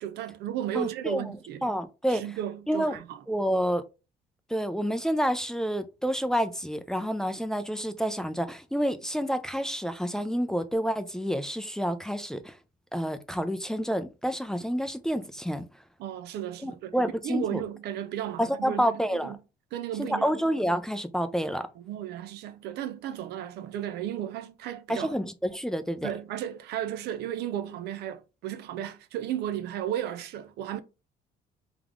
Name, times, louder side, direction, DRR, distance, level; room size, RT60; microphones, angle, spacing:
voice 1, 0.0-1.6 2.1-3.2 16.0-16.9 17.2-19.4 19.7-20.3 21.8-25.1 26.0-30.8, right 11 dB, 75° right, 0.6 m, -34 dB
voice 2, 0.7-1.4 1.6-2.2 2.7-3.0 3.3-3.8 4.5-12.5 12.9-15.6 16.6-17.6 18.4-19.4 20.0-21.7 24.9-26.1, equal, 5° left, 0.5 m, -29 dB
3.6 x 3.6 x 3.5 m
cardioid pair, 110°, 17 cm